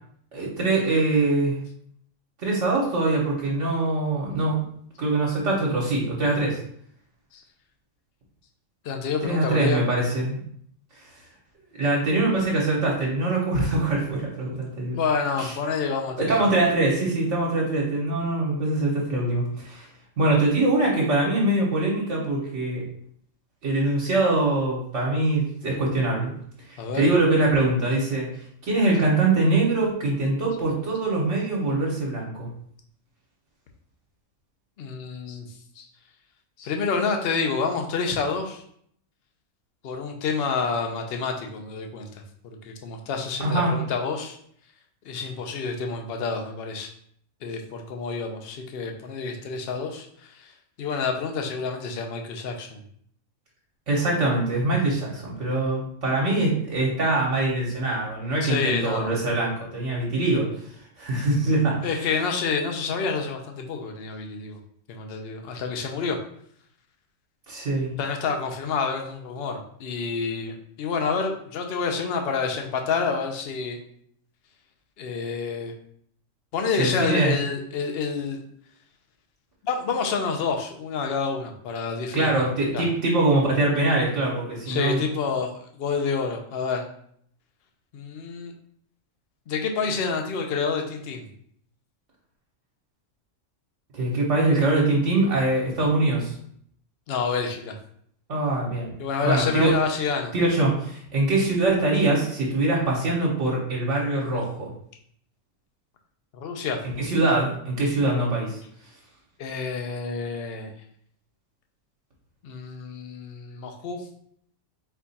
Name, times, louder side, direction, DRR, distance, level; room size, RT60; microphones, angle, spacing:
voice 1, 0.3-1.6 2.4-4.6 5.0-6.6 9.2-10.4 11.8-15.0 15.4-15.5 16.2-19.9 20.2-22.8 23.6-26.3 26.7-28.3 28.6-32.5 43.4-43.7 53.9-60.5 61.0-61.9 67.5-67.9 76.8-77.3 82.1-85.0 93.9-96.3 98.3-98.9 99.2-99.7 100.3-104.7 107.0-108.6, right 2 dB, 65° right, -4 dB, 1.3 m, -23 dB
voice 2, 8.8-9.8 14.9-16.5 26.8-27.1 34.8-35.9 36.6-38.6 39.8-42.1 42.4-44.4 45.0-46.9 47.4-50.5 50.8-52.8 58.4-59.1 61.8-64.6 64.9-66.2 68.0-73.8 75.0-75.7 76.5-78.4 79.6-82.3 82.7-82.9 84.7-86.8 87.9-88.5 89.5-91.2 97.1-97.8 99.0-100.3 106.3-106.8 109.4-110.7 112.4-114.1, left 5 dB, 55° left, 3 dB, 0.8 m, -28 dB
4.4 x 2.4 x 4.0 m, 0.65 s
omnidirectional pair, 1.4 m